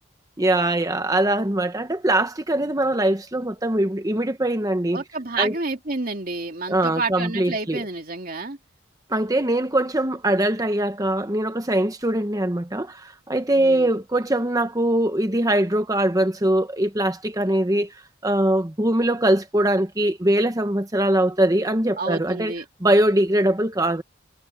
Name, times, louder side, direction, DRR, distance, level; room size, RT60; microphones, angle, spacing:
voice 1, 0.4-5.0 5.4-5.5 6.7-7.9 9.1-17.9 18.2-22.5 22.8-24.0, right 1 dB, 20° right, 1.0 m, -22 dB
voice 2, 4.9-8.6 13.6-13.9 22.0-22.6, right 3 dB, 45° right, 2.7 m, -29 dB
head